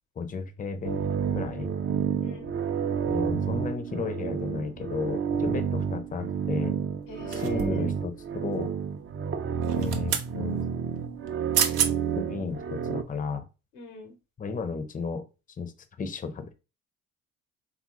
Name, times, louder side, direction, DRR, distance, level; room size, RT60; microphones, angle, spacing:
voice 1, 0.2-1.0 1.3-1.7 3.0-6.8 7.3-8.1 8.4-8.7 9.7-10.6 12.2-13.4 14.4-16.5, left 5 dB, 25° left, 10 dB, 0.5 m, -34 dB
sound 1, 0.8-13.0, right 7 dB, 35° right, 0.5 m, -30 dB
voice 2, 2.2-2.6 7.1-7.9 13.7-14.2, left 2 dB, 85° left, 5 dB, 1.0 m, -42 dB
sound 2, 7.3-7.9 9.6-10.3 11.3-11.4 11.5-11.9 12.5-12.6, right 9 dB, 75° right, 0.7 m, -28 dB
3.4 x 2.5 x 3.0 m, 0.30 s
hypercardioid pair, 60°, 36 cm